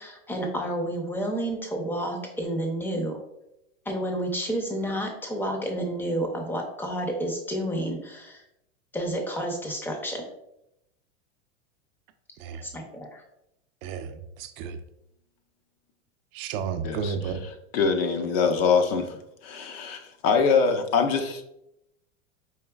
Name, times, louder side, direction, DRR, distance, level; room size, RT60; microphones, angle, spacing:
voice 1, 0.0-3.2 3.9-8.4 8.9-10.2 12.6-13.2, right 1 dB, 5° left, 2 dB, 0.5 m, -30 dB
voice 2, 13.8-14.8 16.3-17.4, right 6 dB, 55° right, 8 dB, 0.4 m, -32 dB
voice 3, 17.7-19.2 19.4-21.4, left 5 dB, 60° left, 7 dB, 0.6 m, -23 dB
4.7 x 3.1 x 2.3 m, 0.83 s
supercardioid pair, 130°, 35 cm